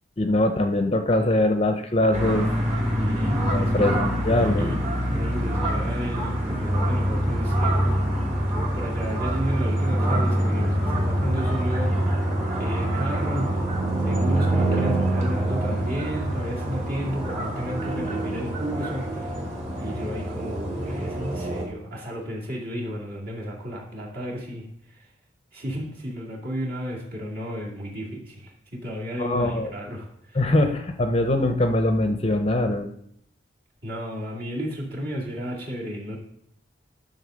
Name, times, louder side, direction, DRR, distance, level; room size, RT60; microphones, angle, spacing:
voice 1, 0.2-2.5 3.5-4.7 29.2-29.7 30.3-32.9, left 1 dB, 30° left, 6 dB, 0.6 m, -22 dB
sound 1, 2.1-21.7, right 1 dB, 35° right, 2.4 m, -25 dB
voice 2, 2.9-4.0 4.4-8.0 8.5-11.9 12.6-13.7 14.0-19.4 19.8-25.1 25.5-30.5 33.8-36.2, equal, 50° right, -4 dB, 2.5 m, -33 dB
10.5 x 3.9 x 6.3 m, 0.72 s
head